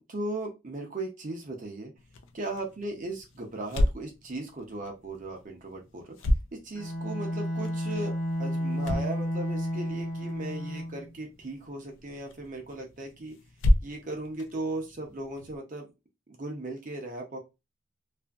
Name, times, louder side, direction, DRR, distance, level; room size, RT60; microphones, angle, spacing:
voice 1, 0.0-1.9 2.3-6.2 6.6-13.3 13.8-15.9 16.3-17.4, right 2 dB, 40° right, 1 dB, 0.5 m, -37 dB
sound 1, 2.0-15.6, left 1 dB, 65° left, 0.4 m, -33 dB
Bowed string instrument, 6.7-11.1, equal, 85° left, 1.1 m, -32 dB
2.6 x 2.5 x 2.3 m, 0.25 s
head